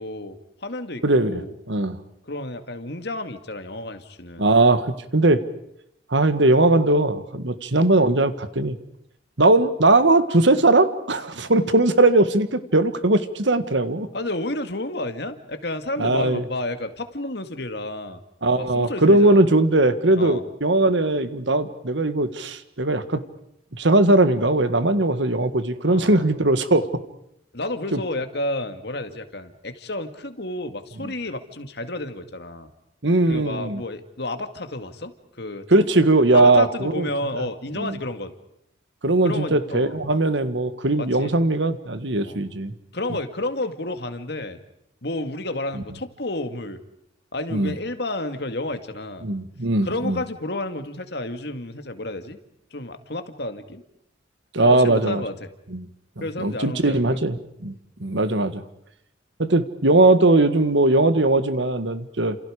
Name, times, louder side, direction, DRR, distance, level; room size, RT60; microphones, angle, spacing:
voice 1, 0.0-1.5 2.2-4.5 14.1-18.2 18.6-19.5 20.2-20.4 25.9-26.3 27.5-32.7 33.3-35.1 35.4-35.9 36.3-38.3 39.2-40.0 41.0-41.3 42.2-42.4 42.9-44.6 45.0-46.8 47.3-49.3 49.8-52.4 52.7-53.8 54.6-55.5 56.2-57.2, left 2 dB, 60° left, 8 dB, 2.1 m, -31 dB
voice 2, 1.0-1.4 1.7-2.0 4.4-5.4 6.1-8.8 9.4-14.1 16.0-16.4 18.4-23.2 23.7-26.9 27.9-28.0 31.0-31.1 33.0-33.8 35.7-37.1 37.8-37.9 39.0-42.7 47.5-47.7 49.2-50.2 54.5-55.2 55.7-55.9 56.4-57.7 58.0-58.6 59.4-62.4, right 2 dB, 70° right, 11 dB, 1.8 m, -19 dB
30.0 x 28.0 x 5.1 m, 0.77 s
head